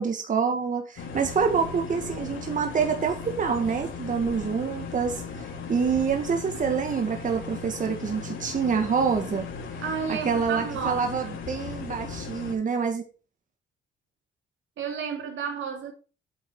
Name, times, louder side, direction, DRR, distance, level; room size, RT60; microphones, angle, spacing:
voice 1, 0.0-9.5 10.3-13.0, right 6 dB, 40° right, 1.7 m, -27 dB
sound 1, 1.0-12.5, left 4 dB, 80° left, 2.8 m, -37 dB
voice 2, 9.8-11.1 14.8-15.9, right 6 dB, 75° right, 3.2 m, -31 dB
8.3 x 8.3 x 4.8 m
cardioid pair, 90°, 20 cm